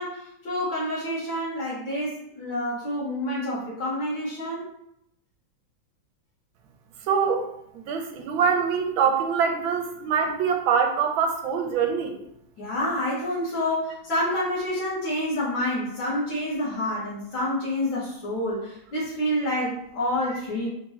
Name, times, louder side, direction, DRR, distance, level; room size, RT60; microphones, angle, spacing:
voice 1, 0.0-4.7 12.6-20.7, left 1 dB, 65° left, -9 dB, 2.3 m, -28 dB
voice 2, 7.0-7.5 7.7-12.2, right 6 dB, 80° right, 5 dB, 1.4 m, -24 dB
4.4 x 3.5 x 3.2 m, 0.77 s
omnidirectional pair, 2.3 m